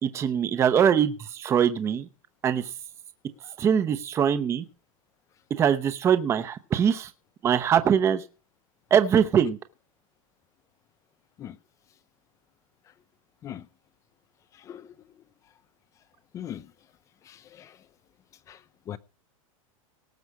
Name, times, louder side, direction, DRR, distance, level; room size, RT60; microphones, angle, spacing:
voice 1, 0.0-2.1 2.4-2.6 3.6-4.6 5.5-7.1 7.4-8.2 8.9-9.6, right 8 dB, 15° right, 0.8 m, -22 dB
voice 2, 16.3-16.7 17.3-17.7 18.5-18.6 18.9-19.0, left 10 dB, 15° left, 0.6 m, -39 dB
18.5 x 7.8 x 4.8 m
supercardioid pair, 165°, 18 cm